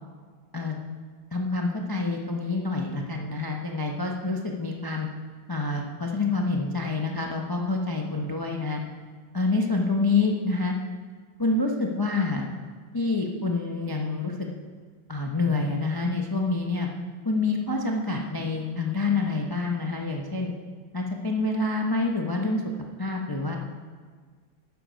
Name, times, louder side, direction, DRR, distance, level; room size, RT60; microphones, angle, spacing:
voice 1, 1.3-5.1 5.5-8.8 9.3-10.7 11.4-12.5 12.9-14.3 15.1-16.9 17.2-20.5 20.9-22.6 23.0-23.6, left 3 dB, 20° left, 1 dB, 0.5 m, -27 dB
12.0 x 9.4 x 5.2 m, 1.6 s
omnidirectional pair, 1.9 m